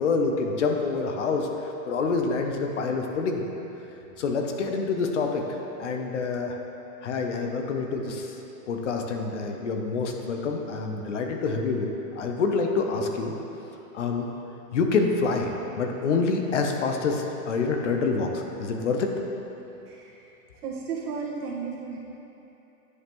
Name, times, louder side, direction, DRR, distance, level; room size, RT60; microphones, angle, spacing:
voice 1, 0.0-3.4 4.2-6.6 7.0-8.3 8.7-13.3 13.9-14.3 14.7-19.1, left 4 dB, 50° left, 3 dB, 0.7 m, -27 dB
voice 2, 20.6-22.0, right 5 dB, 85° right, -4 dB, 1.6 m, -33 dB
9.5 x 5.3 x 3.0 m, 3.0 s
hypercardioid pair, 180°, 45 cm